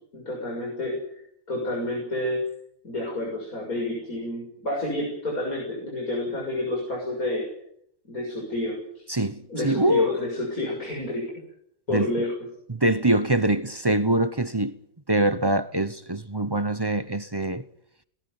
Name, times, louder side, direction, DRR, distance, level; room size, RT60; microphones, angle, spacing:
voice 1, 0.1-1.0 1.5-2.4 2.8-7.4 8.1-8.8 9.5-11.3 11.9-12.4, left 1 dB, 65° left, 7.4 m, -29 dB
voice 2, 9.1-10.1 11.9-12.1 12.7-14.8 15.1-17.6, right 1 dB, 20° right, 0.7 m, -24 dB
21.5 x 18.5 x 9.7 m
omnidirectional pair, 1.6 m